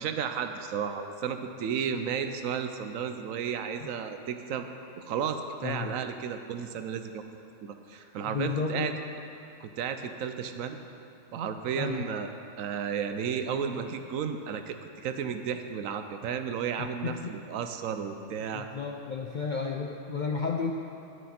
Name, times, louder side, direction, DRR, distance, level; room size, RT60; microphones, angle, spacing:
voice 1, 0.0-4.7 5.0-7.2 7.6-8.9 9.6-10.8 11.3-12.3 12.6-18.7, right 7 dB, 80° right, 7 dB, 1.0 m, -33 dB
voice 2, 5.6-6.0 7.9-9.0 11.8-12.1 16.8-17.3 18.5-20.7, left 5 dB, 60° left, 1 dB, 0.5 m, -33 dB
11.0 x 9.3 x 4.3 m, 2.7 s
omnidirectional pair, 1.4 m